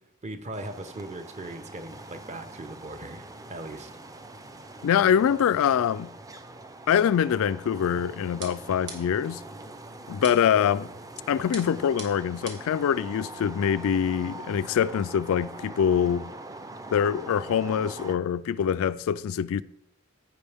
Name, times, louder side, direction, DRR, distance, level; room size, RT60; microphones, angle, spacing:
voice 1, 0.2-3.9, right 2 dB, 30° right, 0.9 m, -39 dB
sound 1, 0.5-18.2, right 2 dB, 15° right, 0.5 m, -43 dB
voice 2, 4.8-6.1 6.9-9.4 10.1-10.9 11.3-16.3 16.9-19.6, left 8 dB, 65° left, 0.3 m, -24 dB
sound 2, 8.4-9.3 10.2-10.7 11.5-12.8, right 4 dB, 55° right, 1.7 m, -42 dB
15.0 x 5.2 x 3.5 m
head